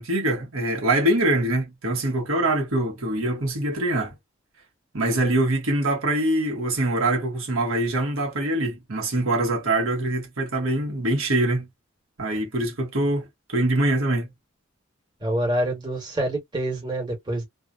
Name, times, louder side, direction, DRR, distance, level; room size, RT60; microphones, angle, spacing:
voice 1, 0.0-4.1 4.9-11.7 12.2-14.3, right 1 dB, 80° right, 1.2 m, -24 dB
voice 2, 15.2-17.5, right 1 dB, 20° right, 1.3 m, -26 dB
2.8 x 2.3 x 2.3 m
head